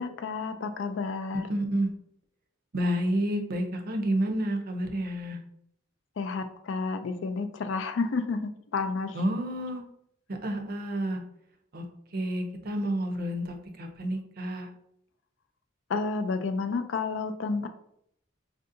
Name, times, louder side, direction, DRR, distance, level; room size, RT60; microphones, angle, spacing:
voice 1, 0.0-1.5 6.2-9.2 15.9-17.7, left 4 dB, 65° left, 8 dB, 0.4 m, -31 dB
voice 2, 1.5-1.9 2.7-5.4 9.1-9.8 10.3-11.2 11.7-11.8 12.1-14.7, right 1 dB, 45° right, 4 dB, 0.5 m, -29 dB
4.5 x 2.6 x 2.5 m, 0.72 s
head